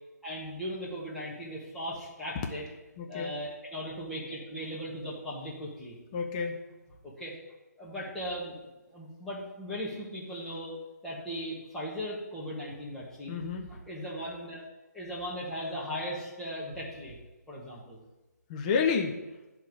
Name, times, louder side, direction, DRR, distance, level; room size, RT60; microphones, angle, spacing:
voice 1, 0.2-2.7 3.1-6.0 7.2-7.3 7.8-10.7 11.0-14.6 14.9-17.2 17.5-18.0, equal, 5° left, -8 dB, 1.6 m, -38 dB
voice 2, 3.0-3.4 6.1-6.6 13.3-13.7 18.5-19.2, left 5 dB, 25° left, 2 dB, 0.7 m, -30 dB
10.0 x 3.5 x 4.7 m, 1.1 s
figure-of-eight pair, 150°, 9 cm